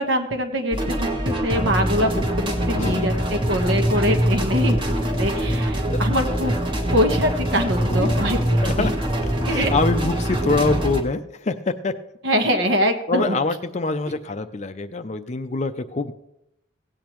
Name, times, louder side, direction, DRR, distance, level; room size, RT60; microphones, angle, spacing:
voice 1, 0.0-4.9 5.2-6.5 6.9-8.9 9.4-9.7 12.2-13.4, equal, 65° right, 6 dB, 1.3 m, -23 dB
sound 1, 0.7-11.0, equal, 25° right, 1.2 m, -23 dB
voice 2, 2.8-3.2 5.4-5.5 5.9-6.0 7.9-8.2 8.6-8.9 9.5-11.9 13.1-16.1, left 3 dB, 35° left, 10 dB, 0.5 m, -25 dB
17.0 x 8.6 x 3.0 m, 0.81 s
head